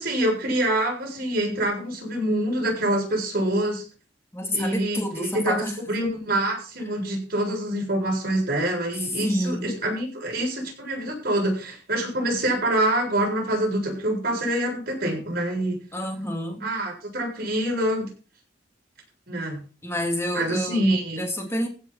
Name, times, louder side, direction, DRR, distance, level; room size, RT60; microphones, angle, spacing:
voice 1, 0.0-3.8 4.5-15.8 16.6-18.1 19.3-19.6 20.3-21.2, right 1 dB, 55° right, 0 dB, 7.4 m, -26 dB
voice 2, 4.3-5.8 9.2-9.7 15.9-16.7 19.8-20.8 21.2-21.7, left 1 dB, 15° left, 3 dB, 3.2 m, -28 dB
16.0 x 6.1 x 6.0 m, 0.35 s
head